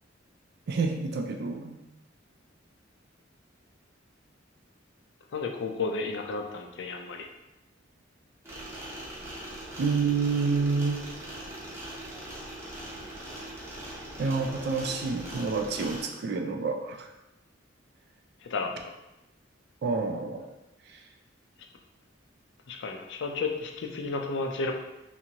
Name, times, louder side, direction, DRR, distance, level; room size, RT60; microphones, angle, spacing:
voice 1, 0.7-1.8 9.8-11.0 14.2-17.1 19.8-20.4, right 4 dB, 60° right, 4 dB, 0.4 m, -28 dB
voice 2, 5.3-7.3 18.5-18.7 22.7-24.7, left 3 dB, 65° left, 3 dB, 0.4 m, -32 dB
sound 1, 8.4-16.0, right 1 dB, 15° right, 0.7 m, -41 dB
2.8 x 2.5 x 2.7 m, 0.94 s
head